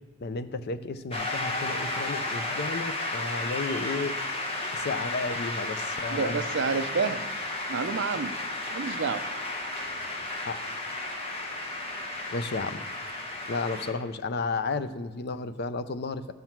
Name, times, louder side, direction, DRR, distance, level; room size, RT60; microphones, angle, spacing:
voice 1, 0.2-4.2 4.7-6.5 8.9-9.0 10.4-10.6 12.3-12.8 13.5-16.3, left 3 dB, 45° left, 12 dB, 0.4 m, -33 dB
Shout / Cheering / Applause, 1.1-13.9, left 2 dB, 25° left, 1.2 m, -33 dB
voice 2, 6.1-7.2 7.7-8.3 8.7-9.2, right 5 dB, 55° right, 10 dB, 0.5 m, -29 dB
14.0 x 5.7 x 4.5 m, 1.3 s
head